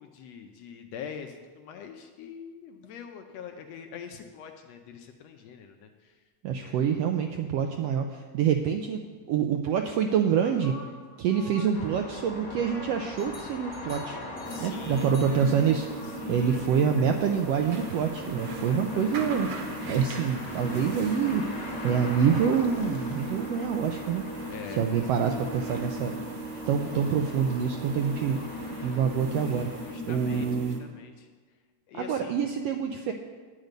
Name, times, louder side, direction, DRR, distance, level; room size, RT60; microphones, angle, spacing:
voice 1, 0.0-6.3 6.5-6.8 14.5-15.2 16.0-16.7 18.6-19.2 24.5-25.5 29.4-31.3 31.9-32.4, left 7 dB, 75° left, 5 dB, 1.7 m, -44 dB
voice 2, 6.4-10.8 11.2-14.2 14.6-15.9 16.3-19.5 19.9-21.4 21.8-24.2 24.7-26.1 26.7-28.4 28.8-29.7 30.1-30.8 31.9-33.1, right 7 dB, 80° right, 5 dB, 1.4 m, -26 dB
sound 1, 10.4-17.0, left 1 dB, 55° left, 0.8 m, -47 dB
sound 2, 11.7-29.9, left 2 dB, 40° left, 1.3 m, -42 dB
sound 3, 14.4-30.8, right 1 dB, 65° right, 2.2 m, -37 dB
10.5 x 9.2 x 5.2 m, 1.5 s
omnidirectional pair, 3.4 m